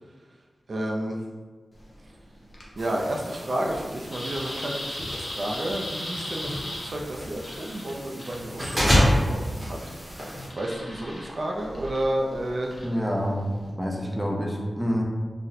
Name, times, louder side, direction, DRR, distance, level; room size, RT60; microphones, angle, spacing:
voice 1, 0.7-1.2 2.8-9.8 10.6-12.7, right 1 dB, 60° right, -1 dB, 0.3 m, -31 dB
sound 1, 1.7-13.7, left 1 dB, 55° left, 0.7 m, -40 dB
sound 2, 2.8-10.5, equal, 25° right, 0.8 m, -29 dB
voice 2, 12.8-13.4 13.8-15.0, equal, 5° right, -2 dB, 0.5 m, -27 dB
2.6 x 2.1 x 4.0 m, 1.4 s
wide cardioid pair, 80°, 0 cm